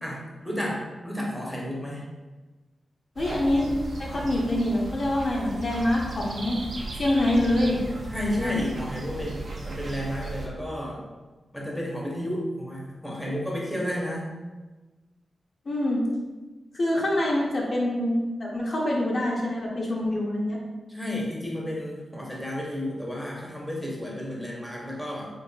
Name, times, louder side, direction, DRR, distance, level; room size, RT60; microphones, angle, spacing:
voice 1, 0.0-2.0 8.1-11.0 11.5-14.3 20.9-25.3, equal, 5° left, -4 dB, 0.7 m, -32 dB
voice 2, 3.2-6.6 7.0-7.8 8.2-8.6 15.7-16.0 16.7-20.6, left 1 dB, 40° left, -3 dB, 0.6 m, -25 dB
sound 1, 3.2-10.5, right 2 dB, 50° right, 0.5 m, -36 dB
3.9 x 3.4 x 2.2 m, 1.2 s
wide cardioid pair, 165°, 0 cm